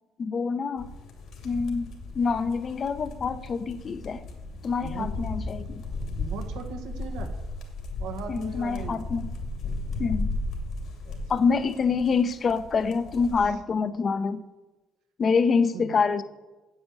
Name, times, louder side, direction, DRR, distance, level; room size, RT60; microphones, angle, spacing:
voice 1, 0.2-0.9 1.4-1.9 2.1-4.2 4.6-5.8 8.3-9.2 10.0-10.3 11.3-14.4 15.2-16.2, left 5 dB, 45° left, 12 dB, 0.8 m, -26 dB
sound 1, 0.8-13.5, left 2 dB, 70° left, 2.5 m, -35 dB
voice 2, 4.8-5.2 6.2-7.3 8.0-9.1 11.0-11.9 13.4-13.6 15.7-16.0, right 5 dB, 90° right, 5 dB, 1.6 m, -40 dB
9.2 x 7.9 x 8.3 m, 1.1 s
cardioid pair, 85°, 0 cm